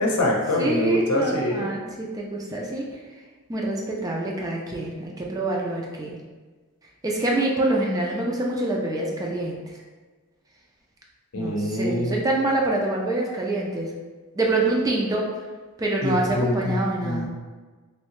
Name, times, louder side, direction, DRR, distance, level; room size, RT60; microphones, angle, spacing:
voice 1, 0.0-1.7 11.3-12.2 16.0-17.3, left 1 dB, 85° left, -1 dB, 0.6 m, -24 dB
voice 2, 0.6-2.9 3.5-6.2 7.0-9.6 11.3-13.9 14.3-15.3 15.8-17.3, right 2 dB, 15° right, -2 dB, 0.3 m, -26 dB
3.1 x 2.7 x 3.0 m, 1.4 s
head